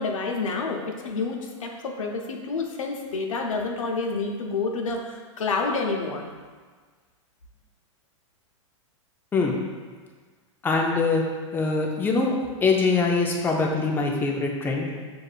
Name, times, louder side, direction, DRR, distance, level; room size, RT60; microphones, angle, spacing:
voice 1, 0.0-6.2, left 4 dB, 90° left, 2 dB, 0.7 m, -28 dB
voice 2, 10.6-11.2 11.5-12.3 12.6-14.9, left 4 dB, 10° left, 0 dB, 0.5 m, -23 dB
6.3 x 2.6 x 2.4 m, 1.5 s
hypercardioid pair, 135°, 16 cm